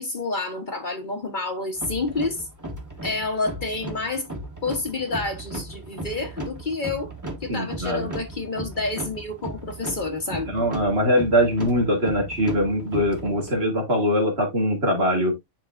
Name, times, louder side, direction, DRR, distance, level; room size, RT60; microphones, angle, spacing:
voice 1, 0.0-2.5 3.0-4.3 4.6-7.1 7.4-10.5, left 3 dB, 45° left, 1.2 m, -29 dB
sound 1, 1.8-13.6, right 1 dB, 15° right, 1.3 m, -36 dB
voice 2, 7.5-8.1 10.5-15.3, equal, 55° right, 2.5 m, -22 dB
10.5 x 3.7 x 2.5 m
omnidirectional pair, 1.2 m